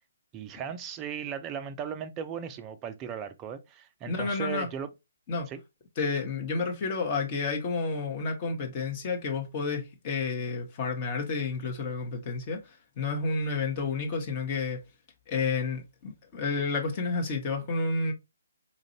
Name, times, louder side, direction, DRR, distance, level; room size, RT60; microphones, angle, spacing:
voice 1, 0.3-4.9 5.5-5.6, right 8 dB, 20° right, 0.4 m, -37 dB
voice 2, 4.0-4.7 5.3-5.5 6.0-12.6 13.0-14.8 15.3-18.1, left 4 dB, 30° left, 1.0 m, -30 dB
4.1 x 2.5 x 2.9 m
figure-of-eight pair, 135°, 0 cm